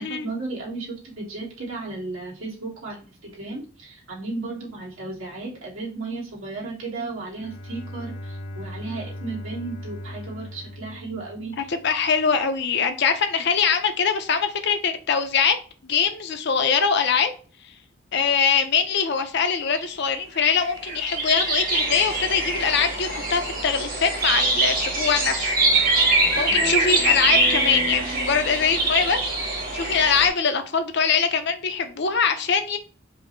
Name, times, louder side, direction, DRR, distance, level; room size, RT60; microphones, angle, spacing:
voice 1, 0.0-11.6, right 3 dB, 80° right, -4 dB, 1.8 m, -34 dB
Bowed string instrument, 7.3-12.0, left 1 dB, 80° left, 1.7 m, -38 dB
voice 2, 11.7-15.6 15.8-17.3 18.1-25.5 26.3-32.8, left 6 dB, 55° left, 8 dB, 0.6 m, -23 dB
sound 1, 19.8-19.9 20.1-30.3, right 2 dB, 45° right, 1.1 m, -23 dB
Speech synthesizer, 25.6-29.1, right 1 dB, 25° right, 0.6 m, -36 dB
5.0 x 2.1 x 4.5 m, 0.38 s
head